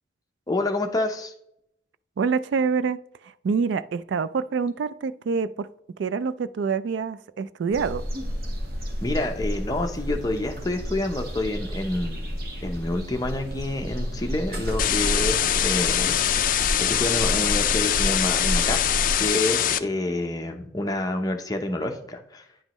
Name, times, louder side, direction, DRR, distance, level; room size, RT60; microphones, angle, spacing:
voice 1, 0.5-1.3 9.0-16.5 16.8-18.8 19.2-22.5, left 1 dB, 20° left, 0.7 m, -28 dB
voice 2, 2.2-3.0 3.2-5.7 6.0-8.0, right 5 dB, 75° right, 0.3 m, -26 dB
sound 1, 7.7-19.3, equal, 50° right, 1.4 m, -31 dB
sound 2, 14.8-19.8, left 10 dB, 45° left, 0.4 m, -23 dB
9.8 x 5.3 x 3.0 m
head